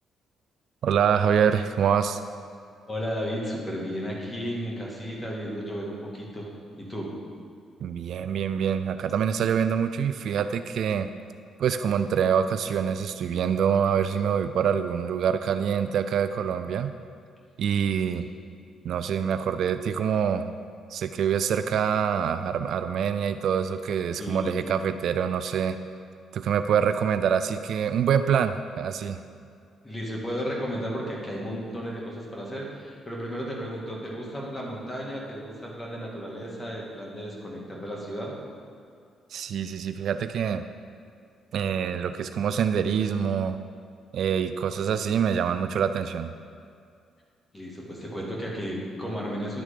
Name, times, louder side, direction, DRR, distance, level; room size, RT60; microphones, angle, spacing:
voice 1, 0.8-2.2 7.8-11.1 11.6-17.0 17.6-18.3 18.8-20.5 20.9-25.8 26.3-29.2 39.3-40.7 41.5-43.6 44.1-46.3, right 7 dB, 70° right, 10 dB, 0.3 m, -25 dB
voice 2, 2.9-6.5 6.8-7.1 24.2-24.6 29.8-38.3 47.5-49.6, equal, 20° left, -3 dB, 1.9 m, -34 dB
10.5 x 3.7 x 5.1 m, 2.4 s
cardioid pair, 90°, 0 cm